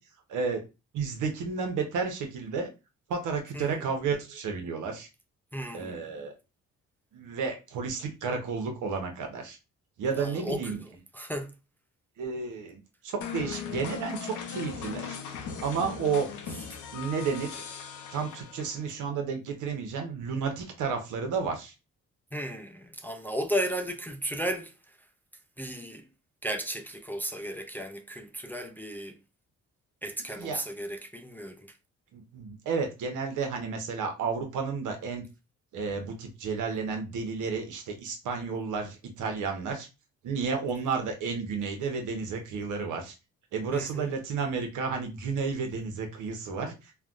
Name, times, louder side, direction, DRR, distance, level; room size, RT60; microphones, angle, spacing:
voice 1, 0.3-0.6 0.9-2.7 3.1-5.1 5.7-6.3 7.1-9.6 10.0-10.8 12.2-15.2 15.6-16.3 16.9-17.6 18.1-21.7 30.3-30.6 32.1-35.2 35.7-39.9 40.2-43.2 43.5-47.0, right 5 dB, 80° right, 0.9 m, -32 dB
voice 2, 3.5-3.9 5.5-6.1 10.2-10.8 11.1-11.5 22.3-24.7 25.6-26.1 26.4-29.2 30.0-31.7 43.7-44.1, right 1 dB, 5° left, 0.3 m, -34 dB
sound 1, 13.2-18.9, left 7 dB, 80° left, 0.6 m, -38 dB
3.2 x 2.2 x 2.5 m
cardioid pair, 90°, 30 cm